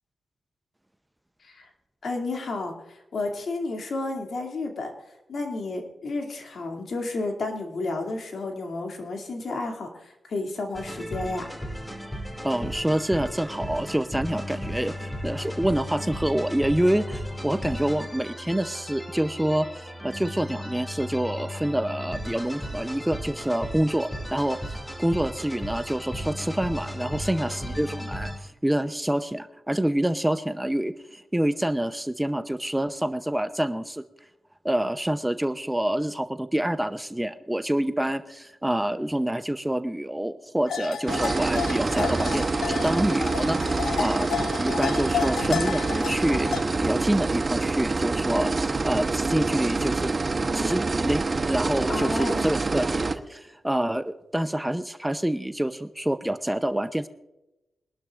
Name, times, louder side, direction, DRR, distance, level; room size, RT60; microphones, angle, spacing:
voice 1, 2.0-4.9 5.3-11.5 51.9-52.5, left 2 dB, 60° left, 3 dB, 2.5 m, -32 dB
sound 1, 10.7-28.4, equal, 10° left, 2.5 m, -35 dB
voice 2, 12.4-34.0 34.6-44.3 44.6-46.5 46.8-50.1 50.5-57.1, right 1 dB, 10° right, 10 dB, 0.7 m, -27 dB
sound 2, 40.7-46.6, left 8 dB, 85° left, 0.6 m, -32 dB
sound 3, 41.1-53.2, right 3 dB, 40° right, 1.0 m, -26 dB
23.5 x 12.0 x 2.5 m, 0.95 s
cardioid pair, 65°, 0 cm